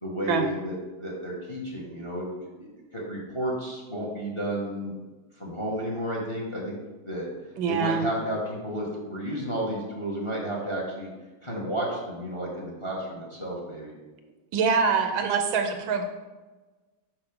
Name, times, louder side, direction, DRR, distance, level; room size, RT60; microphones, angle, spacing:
voice 1, 0.0-2.3 2.6-4.9 5.4-6.8 7.0-7.3 7.7-11.1 11.4-13.9, equal, 15° left, -3 dB, 1.3 m, -32 dB
voice 2, 7.6-8.1 14.5-16.0, right 5 dB, 75° right, 5 dB, 1.4 m, -24 dB
5.9 x 5.6 x 5.3 m, 1.2 s
omnidirectional pair, 2.3 m